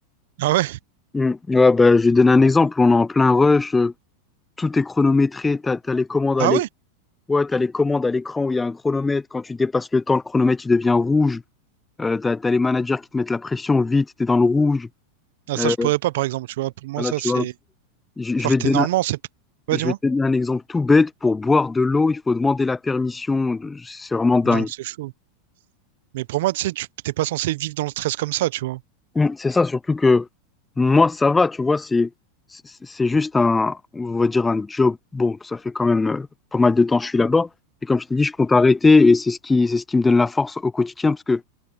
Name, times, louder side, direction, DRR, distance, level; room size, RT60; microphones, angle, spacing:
voice 1, 0.4-0.8 6.4-6.7 15.5-17.5 18.4-19.2 19.7-20.0 24.4-25.1 26.1-28.8, right 17 dB, 70° right, 0.7 m, -24 dB
voice 2, 1.1-3.9 4.6-6.6 7.3-11.4 12.0-14.9 15.6-15.9 17.0-17.5 18.2-18.9 19.8-24.7 29.2-30.3 30.8-32.1 32.5-37.5 37.8-41.4, left 3 dB, 10° left, 0.3 m, -19 dB
hypercardioid pair, 110°, 0 cm